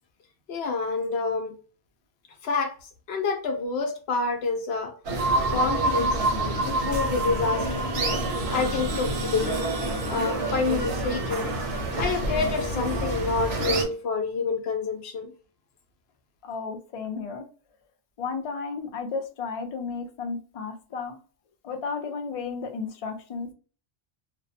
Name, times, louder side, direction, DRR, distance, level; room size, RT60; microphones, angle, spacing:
voice 1, 0.5-1.6 2.4-2.7 3.1-4.9 5.5-6.3 6.6-7.9 8.5-9.6 10.1-11.5 12.0-15.3, left 4 dB, 85° left, 0.9 m, -28 dB
sound 1, 5.0-13.8, right 1 dB, 85° right, 1.0 m, -29 dB
sound 2, 5.2-10.9, right 2 dB, 50° right, 0.5 m, -29 dB
voice 2, 16.4-17.5 18.2-21.2 21.6-23.5, left 5 dB, 45° left, 0.5 m, -33 dB
2.6 x 2.1 x 2.7 m
omnidirectional pair, 1.0 m